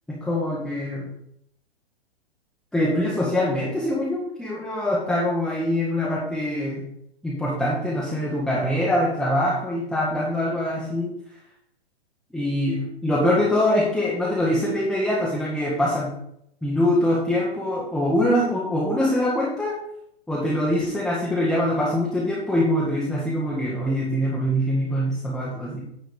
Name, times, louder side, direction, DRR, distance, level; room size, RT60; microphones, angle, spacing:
voice 1, 0.1-1.1 2.7-6.9 7.2-11.1 12.3-16.1 16.6-19.8 20.3-25.8, left 1 dB, ahead, -6 dB, 0.7 m, -24 dB
9.3 x 3.9 x 6.9 m, 0.72 s
hypercardioid pair, 165°, 32 cm